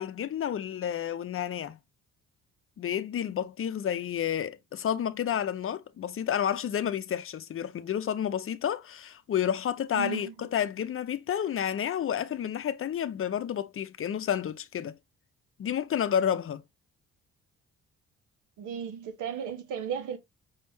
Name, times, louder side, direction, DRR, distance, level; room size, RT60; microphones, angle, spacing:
voice 1, 0.0-1.8 2.8-15.0 15.6-16.6, left 9 dB, 45° left, 0.6 m, -30 dB
voice 2, 9.9-10.3 18.6-20.2, right 8 dB, 90° right, 1.3 m, -35 dB
5.5 x 3.5 x 2.7 m
cardioid pair, 90°, 30 cm